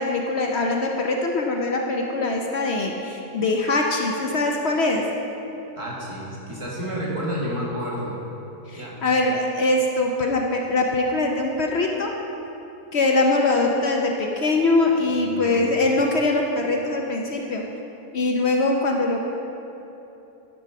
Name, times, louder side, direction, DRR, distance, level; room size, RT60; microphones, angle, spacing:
voice 1, 0.0-5.1 8.7-12.1 12.9-17.6 18.1-19.2, left 2 dB, 55° left, 1 dB, 0.8 m, -22 dB
voice 2, 5.8-8.1 8.7-9.0 15.1-15.8, equal, 20° right, -5 dB, 1.7 m, -30 dB
10.5 x 5.3 x 5.7 m, 2.9 s
omnidirectional pair, 1.6 m